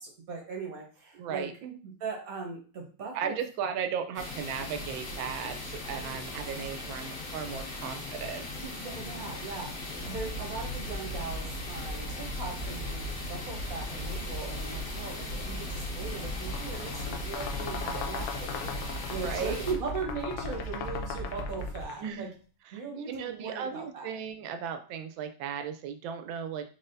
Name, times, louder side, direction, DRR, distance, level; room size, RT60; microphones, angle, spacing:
voice 1, 0.0-1.5 1.8-3.4 5.9-6.3 8.8-22.3 22.7-24.1, right 4 dB, 55° right, 0 dB, 1.3 m, -39 dB
voice 2, 1.1-1.8 3.1-8.8 19.1-19.6 22.0-22.3 23.1-26.7, right 7 dB, 85° right, 8 dB, 1.4 m, -36 dB
sound 1, 4.1-19.7, left 2 dB, 60° left, 1.9 m, -39 dB
sound 2, 9.9-21.8, equal, 25° right, 1.0 m, -38 dB
sound 3, 16.3-22.1, left 7 dB, 80° left, 1.4 m, -39 dB
4.0 x 3.9 x 2.6 m, 0.38 s
omnidirectional pair, 2.1 m